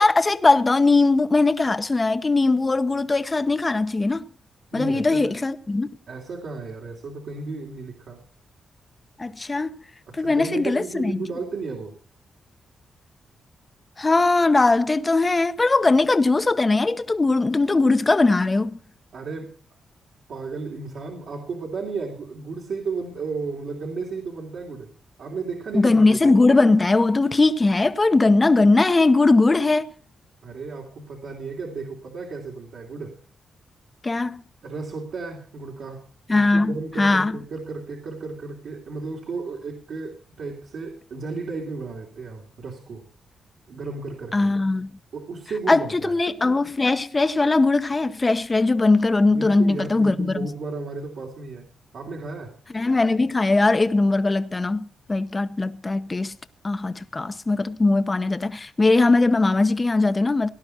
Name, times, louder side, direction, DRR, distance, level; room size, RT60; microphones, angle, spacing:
voice 1, 0.0-4.2 4.7-5.9 9.2-9.8 10.1-11.3 14.0-18.8 25.7-29.9 34.0-34.4 36.3-37.4 44.3-44.9 45.7-50.4 52.7-56.3 56.6-60.5, left 3 dB, 25° left, 0.9 m, -20 dB
voice 2, 4.7-5.4 6.1-8.2 10.1-12.0 19.1-19.6 20.3-24.9 25.2-26.4 30.4-33.2 34.6-43.1 43.7-44.5 45.1-46.1 49.3-51.7 51.9-52.6, right 4 dB, 70° right, 3.1 m, -34 dB
18.0 x 11.5 x 4.4 m
cardioid pair, 110°, 0 cm